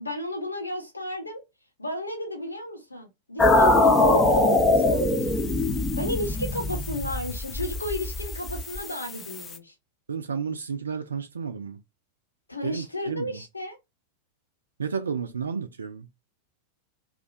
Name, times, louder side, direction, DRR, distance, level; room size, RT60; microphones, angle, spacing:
voice 1, 0.0-1.4 1.8-5.4 6.0-9.7 12.5-13.8, left 1 dB, 80° left, 1.2 m, -34 dB
sound 1, 3.4-9.6, left 2 dB, 20° left, 0.5 m, -23 dB
voice 2, 10.1-11.8 12.6-13.4 14.8-16.1, right 6 dB, 70° right, 0.3 m, -32 dB
2.4 x 2.1 x 2.4 m
figure-of-eight pair, 90°, 0 cm